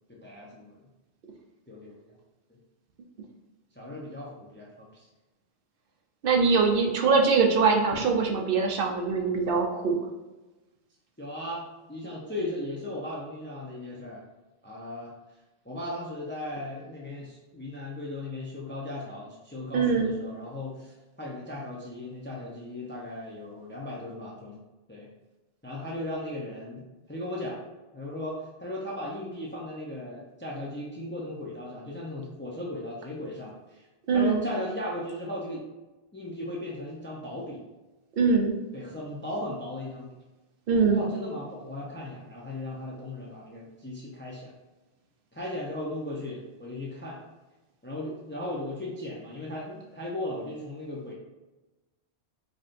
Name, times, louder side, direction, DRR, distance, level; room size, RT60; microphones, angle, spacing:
voice 1, 0.1-0.8 1.7-2.2 2.5-2.6 3.7-5.1 11.2-14.2 14.6-15.1 15.6-24.6 24.9-25.1 25.6-27.6 27.9-33.9 34.1-35.6 36.1-37.6 38.7-40.1 40.7-44.5 45.3-47.2 47.8-51.1, left 1 dB, 15° left, -5 dB, 0.5 m, -37 dB
voice 2, 6.2-10.0 19.7-20.1 34.1-34.4 38.2-38.5 40.7-41.0, right 4 dB, 60° right, 1 dB, 0.8 m, -23 dB
4.8 x 2.7 x 2.6 m, 1.1 s
omnidirectional pair, 1.1 m